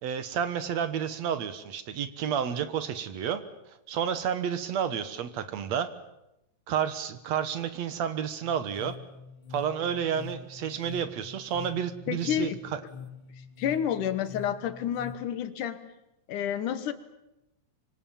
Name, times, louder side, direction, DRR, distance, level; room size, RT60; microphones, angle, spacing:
voice 1, 0.0-3.4 3.9-5.9 6.7-9.0 9.5-12.8, right 8 dB, 65° right, 12 dB, 2.3 m, -30 dB
sound 1, 8.4-15.1, left 7 dB, 40° left, 2.3 m, -45 dB
voice 2, 12.1-12.6 13.6-15.9 16.3-16.9, left 9 dB, 90° left, 12 dB, 2.9 m, -30 dB
25.5 x 25.0 x 7.2 m, 0.88 s
omnidirectional pair, 3.5 m